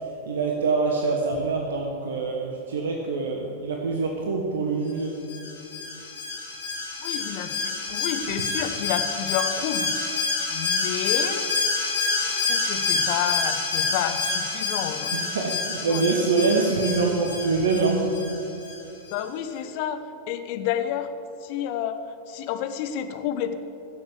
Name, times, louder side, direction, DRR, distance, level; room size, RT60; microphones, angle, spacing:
voice 1, 0.3-5.2 15.1-18.1, right 4 dB, 65° right, 2 dB, 1.2 m, -25 dB
Alarm, 5.3-18.8 19.1-19.2, left 4 dB, 65° left, 2.9 m, -28 dB
voice 2, 7.0-9.9 10.5-11.5 12.2-15.5 15.9-16.3 19.1-20.0 20.3-21.1 21.4-22.0 22.3-23.5, left 10 dB, 45° left, 9 dB, 1.0 m, -30 dB
15.5 x 7.3 x 8.2 m, 2.8 s
figure-of-eight pair, 90°, 0 cm